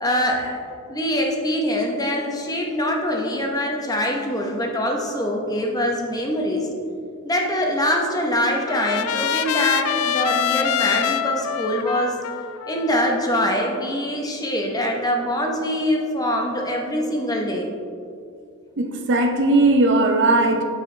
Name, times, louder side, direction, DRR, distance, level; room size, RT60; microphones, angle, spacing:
voice 1, 0.0-0.6 0.9-6.7 7.2-12.2 12.7-17.7, equal, 15° left, 1 dB, 0.8 m, -23 dB
Trumpet, 7.9-14.1, left 10 dB, 70° left, 0.3 m, -26 dB
voice 2, 18.8-20.6, right 2 dB, 55° right, 4 dB, 0.6 m, -18 dB
7.7 x 6.1 x 3.2 m, 2.3 s
head